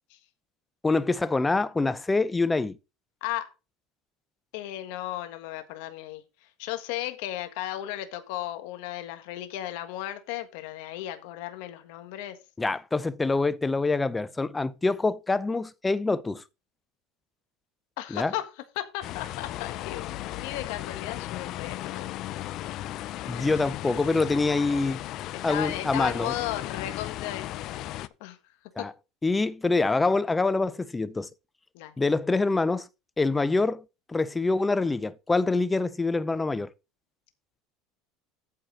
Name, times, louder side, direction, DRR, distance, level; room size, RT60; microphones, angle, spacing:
voice 1, 0.8-2.8 12.6-16.4 18.1-18.3 23.3-25.0 25.4-26.3 28.8-28.9 29.2-31.3 32.0-32.9 33.2-33.8 34.1-36.7, left 3 dB, 15° left, 0.6 m, -25 dB
voice 2, 4.5-6.2 6.6-12.4 18.0-18.5 18.7-22.5 23.3-23.5 25.3-28.4 28.8-28.9 31.7-31.9, left 14 dB, 75° left, 1.5 m, -35 dB
sound 1, 19.0-28.1, left 14 dB, 55° left, 0.5 m, -36 dB
8.8 x 4.6 x 6.1 m
supercardioid pair, 105°, 0 cm